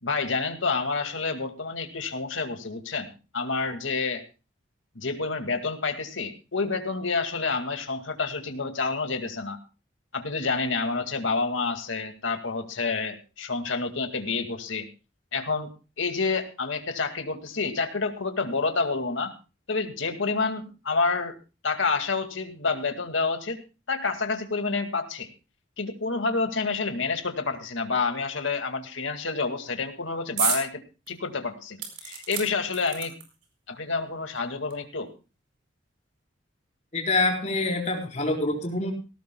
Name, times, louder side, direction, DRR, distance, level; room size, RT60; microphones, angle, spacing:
voice 1, 0.0-4.2 5.0-9.6 10.1-14.9 15.3-15.7 16.0-19.3 19.7-21.4 21.6-23.6 23.9-25.3 25.8-30.8 31.1-33.1 33.7-35.1, left 4 dB, 85° left, 6 dB, 2.1 m, -28 dB
sound 1, 30.4-30.7 31.1-31.2 31.8-33.5 34.3-34.4 34.7-34.8, right 8 dB, 65° right, 4.6 m, -30 dB
voice 2, 36.9-38.9, left 2 dB, 35° left, 0 dB, 4.6 m, -26 dB
19.0 x 17.5 x 2.3 m, 0.32 s
head